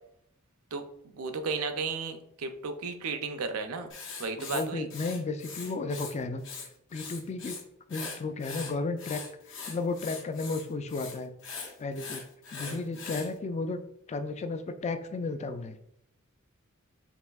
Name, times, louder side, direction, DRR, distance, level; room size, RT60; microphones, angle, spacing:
voice 1, 0.7-3.9 4.2-4.9 12.7-12.8, right 4 dB, 85° right, 7 dB, 0.5 m, -34 dB
Writing, 3.9-6.1 6.4-7.6 7.9-13.3, left 5 dB, 65° left, 0.8 m, -41 dB
voice 2, 4.4-6.4 6.9-7.6 7.9-9.2 9.7-11.3 11.8-12.2 12.5-13.8 14.1-15.8, left 3 dB, 30° left, 9 dB, 0.3 m, -33 dB
5.4 x 2.6 x 2.3 m, 0.75 s
head